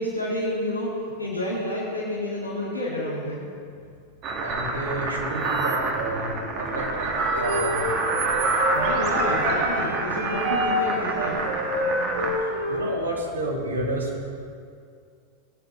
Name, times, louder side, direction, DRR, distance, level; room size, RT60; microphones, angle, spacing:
voice 1, 0.0-3.4 8.7-11.4, left 1 dB, 85° left, -7 dB, 2.1 m, -29 dB
sound 1, 4.2-12.4, right 3 dB, 35° right, 1.8 m, -27 dB
voice 2, 4.4-8.0 12.2-14.1, right 1 dB, 75° right, -1 dB, 2.3 m, -31 dB
Wind instrument woodwind instrument, 7.3-12.8, equal, 55° right, 3.4 m, -28 dB
19.0 x 10.5 x 3.1 m, 2.3 s
figure-of-eight pair, 90°, 0 cm